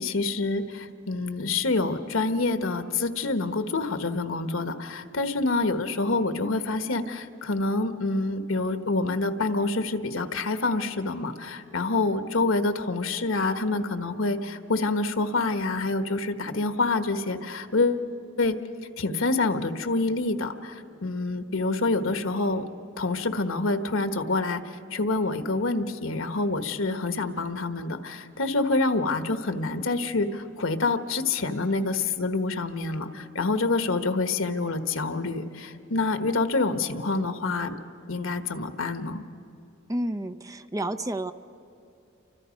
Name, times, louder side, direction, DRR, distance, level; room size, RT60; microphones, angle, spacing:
voice 1, 0.0-18.1 18.4-18.6 19.0-22.6 23.0-24.6 24.9-37.7 38.1-39.2, left 3 dB, 85° left, 9 dB, 1.3 m, -27 dB
voice 2, 39.9-41.3, right 1 dB, 15° right, 10 dB, 0.7 m, -30 dB
29.5 x 24.5 x 5.2 m, 2.9 s
head